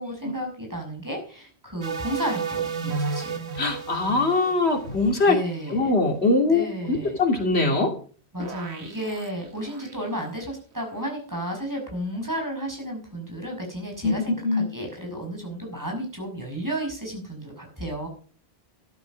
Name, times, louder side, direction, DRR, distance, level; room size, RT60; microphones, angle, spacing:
voice 1, 0.0-3.4 5.3-5.9 6.4-7.2 8.3-18.1, right 1 dB, 15° right, 1 dB, 5.9 m, -32 dB
sound 1, 1.8-5.7 8.4-9.9, right 5 dB, 90° right, 1.7 m, -33 dB
voice 2, 3.6-5.4 5.7-7.9 14.0-14.1 14.4-14.6, left 3 dB, 85° left, 4 dB, 2.9 m, -22 dB
13.0 x 12.5 x 5.1 m, 0.42 s
omnidirectional pair, 1.1 m